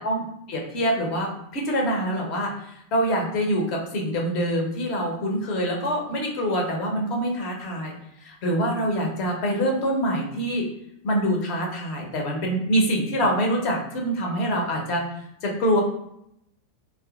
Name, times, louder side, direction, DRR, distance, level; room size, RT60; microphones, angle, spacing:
voice 1, 0.5-7.9 8.2-10.6 11.0-15.0 15.4-15.8, equal, 45° left, 0 dB, 0.9 m, -25 dB
3.5 x 3.1 x 2.4 m, 0.78 s
figure-of-eight pair, 90°, 0 cm